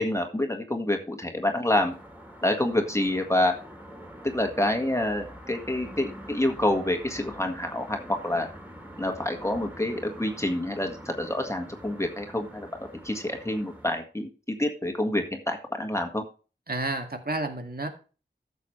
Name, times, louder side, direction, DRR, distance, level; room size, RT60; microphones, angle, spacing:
voice 1, 0.0-1.9 2.4-3.5 4.2-8.5 9.0-16.2, left 1 dB, 15° left, 4 dB, 1.8 m, -27 dB
sound 1, 1.6-13.9, equal, 10° right, 3.2 m, -45 dB
voice 2, 16.7-17.9, right 2 dB, 55° right, 5 dB, 2.1 m, -30 dB
13.5 x 7.2 x 3.2 m, 0.35 s
wide cardioid pair, 50°, 19 cm